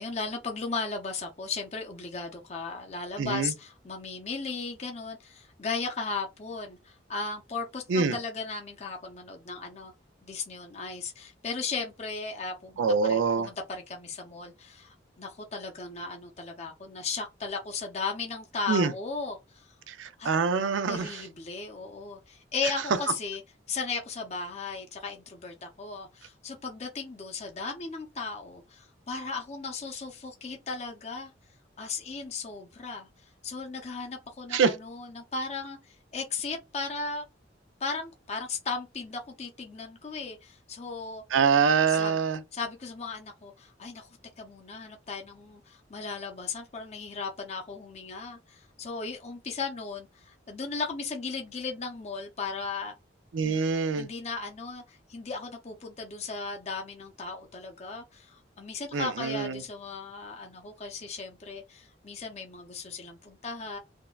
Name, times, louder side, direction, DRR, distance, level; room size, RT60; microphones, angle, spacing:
voice 1, 0.0-9.9 10.2-19.7 20.2-20.3 20.9-23.4 23.7-31.3 31.8-33.1 33.4-37.2 37.8-41.2 42.0-42.2 42.5-44.1 44.4-52.9 53.4-53.6 53.9-63.8, left 4 dB, 35° left, 0.5 m, -36 dB
voice 2, 3.2-3.5 7.9-8.2 12.8-13.5 18.7-18.9 19.9-21.3 22.6-23.0 34.5-34.7 41.3-42.4 53.3-54.1 58.9-59.6, right 5 dB, 90° right, 0.4 m, -25 dB
3.5 x 2.1 x 2.3 m
head